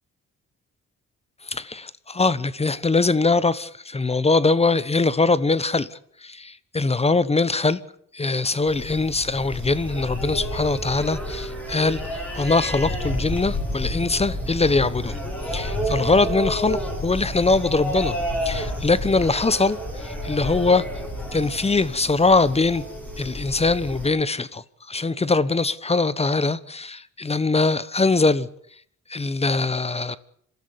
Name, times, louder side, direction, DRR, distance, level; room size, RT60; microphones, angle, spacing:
voice 1, 1.4-5.9 6.2-7.8 8.1-15.2 15.5-18.2 18.4-20.8 21.3-22.8 23.2-28.5 29.1-30.2, left 3 dB, 20° left, 1.1 m, -22 dB
sound 1, 8.7-24.1, equal, 5° left, 6.8 m, -30 dB
26.5 x 13.0 x 9.6 m
cardioid pair, 90°, 30 cm